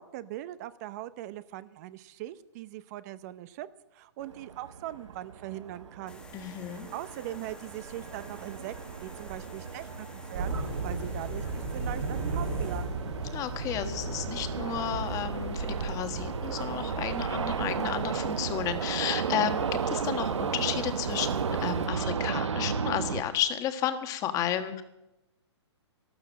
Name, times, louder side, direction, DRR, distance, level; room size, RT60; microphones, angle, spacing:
voice 1, 0.0-3.7 3.9-6.2 6.7-13.0, right 14 dB, 35° right, 15 dB, 0.8 m, -41 dB
sound 1, 4.2-23.2, right 6 dB, 90° right, 1.0 m, -34 dB
sound 2, 6.1-22.2, equal, 5° left, 1.3 m, -50 dB
voice 2, 6.3-6.9 13.3-24.8, left 10 dB, 20° left, 9 dB, 1.4 m, -32 dB
sound 3, 10.3-21.9, right 3 dB, 65° right, 3.9 m, -37 dB
13.0 x 12.5 x 7.4 m, 0.95 s
hypercardioid pair, 145°, 15 cm